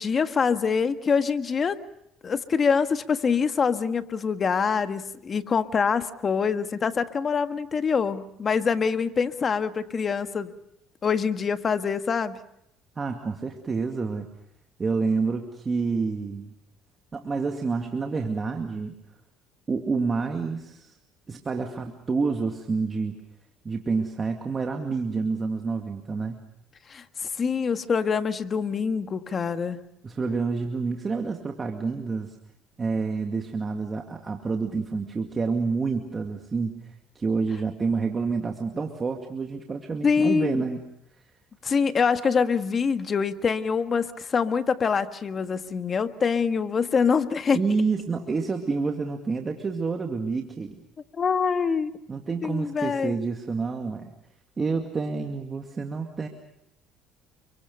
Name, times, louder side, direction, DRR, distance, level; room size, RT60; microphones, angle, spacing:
voice 1, 0.0-1.8 2.2-10.5 11.0-12.4 26.9-29.8 40.0-40.6 41.6-47.6 51.1-51.9 52.4-53.1, left 6 dB, 35° left, 9 dB, 1.5 m, -25 dB
voice 2, 13.0-14.3 14.8-16.5 17.1-19.0 19.7-21.0 21.3-23.2 23.6-26.4 30.0-32.4 32.8-40.8 47.5-50.8 52.1-54.1 54.6-56.3, right 4 dB, 30° right, 3 dB, 2.2 m, -28 dB
30.0 x 24.0 x 5.5 m, 0.79 s
cardioid pair, 105°, 0 cm